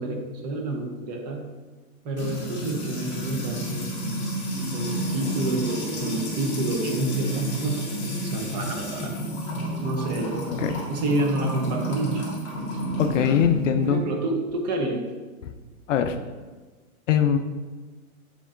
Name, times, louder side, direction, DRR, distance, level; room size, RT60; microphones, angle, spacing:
voice 1, 0.0-1.4 2.0-3.9 4.7-7.8 8.2-9.5 9.8-10.5 10.9-12.2 13.8-15.1, right 2 dB, 30° right, 2 dB, 0.7 m, -28 dB
Music / Water tap faucet / Trickle dribble, 2.2-13.9, right 1 dB, 25° left, 1.6 m, -31 dB
voice 2, 10.5-10.8 13.0-14.0 15.4-15.5 15.9-16.2 17.1-17.4, left 8 dB, 60° left, 8 dB, 0.6 m, -22 dB
7.1 x 3.8 x 3.7 m, 1.3 s
hypercardioid pair, 150°, 43 cm